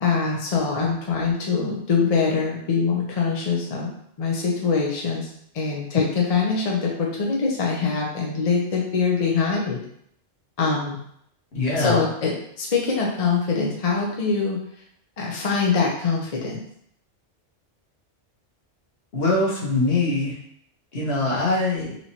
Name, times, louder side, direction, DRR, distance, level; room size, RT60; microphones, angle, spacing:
voice 1, 0.0-3.9 4.2-5.3 5.5-9.8 10.6-11.0 11.8-14.6 15.2-16.6, left 5 dB, 40° left, -2 dB, 0.6 m, -23 dB
voice 2, 11.5-12.0 19.1-20.4 20.9-22.0, left 2 dB, 55° left, -4 dB, 1.2 m, -23 dB
4.2 x 3.0 x 2.8 m, 0.70 s
omnidirectional pair, 1.3 m